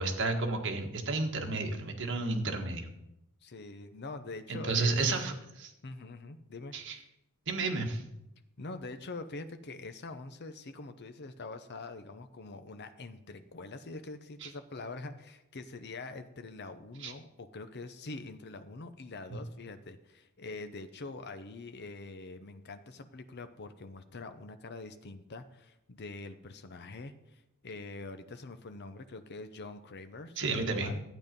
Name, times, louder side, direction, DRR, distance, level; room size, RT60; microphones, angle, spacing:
voice 1, 0.0-2.9 4.5-5.7 6.7-7.0 7.5-8.0 14.4-14.5 17.0-17.1 19.3-19.4 30.4-30.9, right 3 dB, 60° right, 3 dB, 1.6 m, -32 dB
voice 2, 3.4-5.0 5.8-6.7 8.6-31.0, left 3 dB, 50° left, 9 dB, 0.7 m, -44 dB
12.0 x 9.2 x 5.3 m, 0.89 s
head